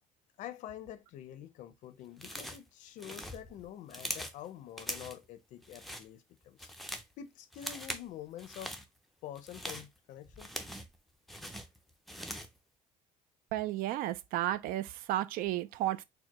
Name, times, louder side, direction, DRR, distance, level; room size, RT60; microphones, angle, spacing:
voice 1, 0.4-8.8 9.2-10.5, left 11 dB, 60° left, 0.5 m, -47 dB
sound 1, 2.2-2.7 3.0-4.4 4.8-5.2 5.6-6.1 6.4-7.1 7.5-8.1 8.4-8.8 9.3-11.0 11.3-12.6, equal, ahead, 0.4 m, -42 dB
voice 2, 13.5-16.0, right 14 dB, 75° right, 0.4 m, -33 dB
4.4 x 2.2 x 2.9 m
cardioid pair, 150°, 15 cm